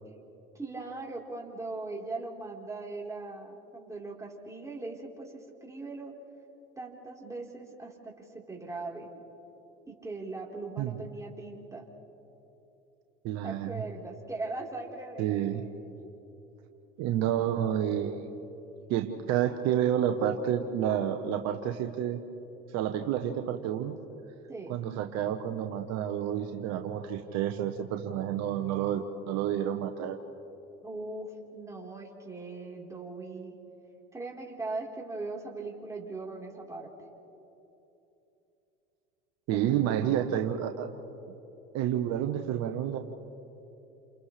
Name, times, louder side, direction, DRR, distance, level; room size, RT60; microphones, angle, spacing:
voice 1, 0.5-6.1 6.8-9.1 9.9-11.8 13.4-16.1 24.5-24.7 30.8-33.5 34.1-36.9 39.5-40.3, right 3 dB, 10° right, -3 dB, 4.2 m, -40 dB
voice 2, 13.2-13.8 15.2-15.6 17.0-18.3 18.9-22.2 22.7-24.0 24.7-30.2 39.5-40.9 41.7-43.0, right 10 dB, 65° right, 5 dB, 1.2 m, -29 dB
29.5 x 28.0 x 3.4 m, 2.9 s
hypercardioid pair, 75°, 29 cm